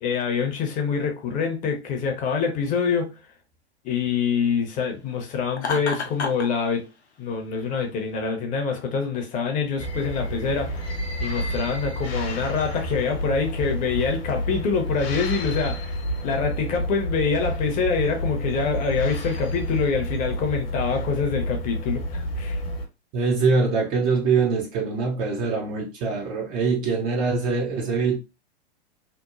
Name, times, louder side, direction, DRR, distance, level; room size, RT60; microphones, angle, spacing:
voice 1, 0.0-3.2 3.8-6.9 7.2-15.9 16.2-22.6, left 5 dB, 25° left, 0.6 m, -25 dB
Laughter, 5.6-6.5, left 4 dB, 85° left, 0.6 m, -28 dB
sound 1, 9.8-22.9, equal, 60° left, 0.9 m, -29 dB
voice 2, 23.1-28.2, right 4 dB, 25° right, 0.4 m, -23 dB
2.9 x 2.0 x 2.4 m
figure-of-eight pair, 100°, 33 cm